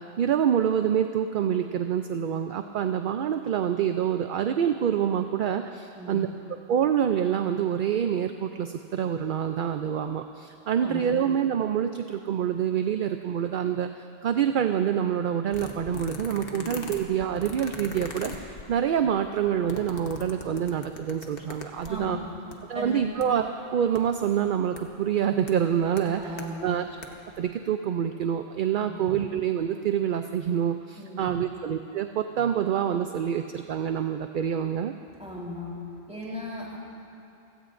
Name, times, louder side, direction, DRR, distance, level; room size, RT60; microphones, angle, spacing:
voice 1, 0.0-6.3 6.7-22.2 22.7-26.9 27.4-34.9, right 9 dB, 60° right, 7 dB, 0.6 m, -26 dB
voice 2, 5.9-6.2 10.8-11.1 16.5-16.7 21.8-22.3 22.7-23.0 26.2-26.7 28.9-29.1 31.0-31.3 35.2-35.8 36.1-36.8, equal, 5° right, -6 dB, 4.1 m, -37 dB
sound 1, 15.5-22.1 22.5-22.6 22.8-23.2 23.9-24.0 24.8-24.9 25.5-25.6 26.0-26.5 26.9-27.0 27.3-27.4, left 3 dB, 65° left, 1.3 m, -39 dB
29.0 x 16.5 x 2.6 m, 2.7 s
omnidirectional pair, 1.0 m